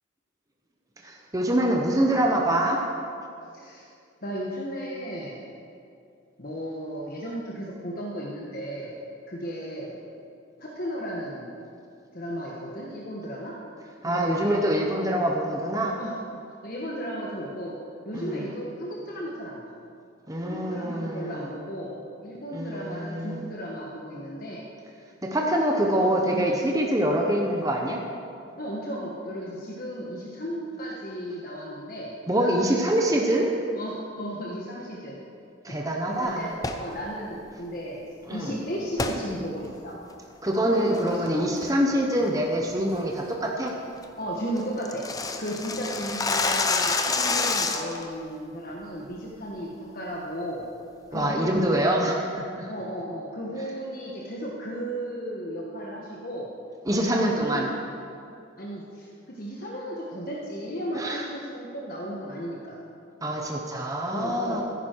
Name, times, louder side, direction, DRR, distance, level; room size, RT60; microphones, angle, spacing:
voice 1, 1.0-2.8 14.0-16.0 18.1-18.5 20.3-21.5 22.5-23.4 25.2-28.0 32.3-33.5 35.6-36.5 38.3-38.5 40.4-43.7 51.1-52.7 56.8-57.7 60.9-61.3 63.2-64.6, right 1 dB, 15° right, 0 dB, 0.9 m, -25 dB
voice 2, 3.5-3.9 4.2-5.4 6.4-8.9 9.3-10.0 10.6-11.5 12.1-13.5 14.0-14.7 16.0-16.2 16.6-17.7 18.0-19.6 20.4-24.6 25.3-26.5 28.6-32.1 32.4-33.0 33.8-35.2 35.7-35.8 36.1-38.0 38.3-40.0 40.9-41.5 44.2-45.0 45.4-50.6 51.1-51.9 52.7-56.5 57.1-57.7 58.6-62.8 64.1-64.6, equal, 45° left, -4 dB, 1.4 m, -35 dB
sound 1, 36.5-36.9 39.0-39.2 39.7-39.8 40.3-40.6 40.9-41.3 41.6-41.9 42.2-42.3 42.7-43.0 43.3-43.4 43.7-43.8 44.0-44.1 44.4-48.0, left 3 dB, 20° left, 0.6 m, -27 dB
15.5 x 9.9 x 4.6 m, 2.4 s
head